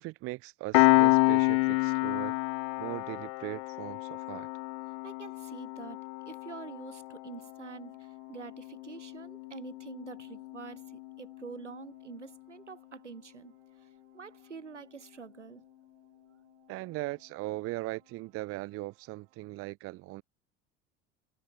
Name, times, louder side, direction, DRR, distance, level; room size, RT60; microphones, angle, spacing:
voice 1, 0.0-2.4 2.8-4.5 16.7-20.2, right 20 dB, 40° right, 0.6 m, -39 dB
Piano, 0.7-11.8, left 31 dB, 55° left, 0.5 m, -30 dB
sound 1, 0.7-19.5, right 23 dB, 65° right, 5.5 m, -68 dB
voice 2, 5.0-15.6, right 5 dB, 90° right, 2.2 m, -47 dB
figure-of-eight pair, 65°, 34 cm